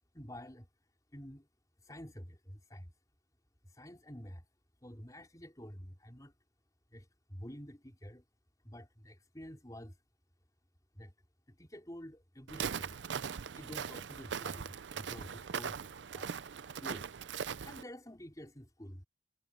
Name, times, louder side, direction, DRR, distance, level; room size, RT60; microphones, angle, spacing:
voice 1, 0.1-0.7 1.1-1.5 1.8-2.9 3.6-4.5 4.8-6.3 6.9-8.2 8.6-10.0 10.9-11.1 11.5-13.0 13.5-15.8 16.1-16.3 16.8-17.1 17.6-19.0, equal, 20° left, 4.8 m, -49 dB
Walk footsteps, 12.5-17.8, right 7 dB, 70° right, 0.5 m, -40 dB
head